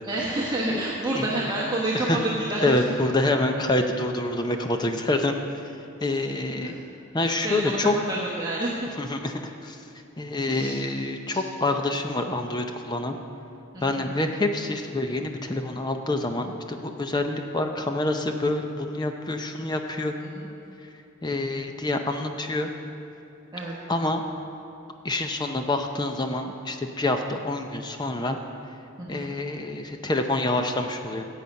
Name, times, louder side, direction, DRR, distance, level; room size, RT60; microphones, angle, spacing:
voice 1, 0.0-2.7 6.6-6.8 7.4-7.8 8.1-8.9 10.5-10.8 11.3-11.4 13.7-14.1 20.2-20.5 23.5-23.7 29.0-29.3, right 2 dB, 20° right, -5 dB, 1.1 m, -29 dB
voice 2, 2.6-5.3 6.0-6.7 7.1-7.9 9.0-9.8 10.2-13.2 13.8-20.1 21.2-22.7 23.9-24.2 25.0-28.4 29.1-31.3, left 2 dB, 20° left, 5 dB, 0.6 m, -27 dB
15.0 x 8.4 x 5.3 m, 2.7 s
head